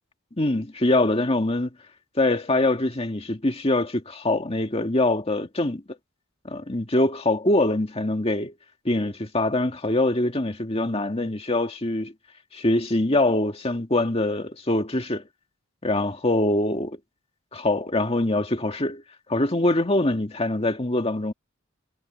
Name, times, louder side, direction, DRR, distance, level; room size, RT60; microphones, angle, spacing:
voice 1, 0.4-1.7 2.2-5.8 6.4-8.5 8.9-12.1 12.5-15.2 15.8-17.0 17.5-19.0 19.3-21.3, left 2 dB, 30° left, 1.9 m, -23 dB
head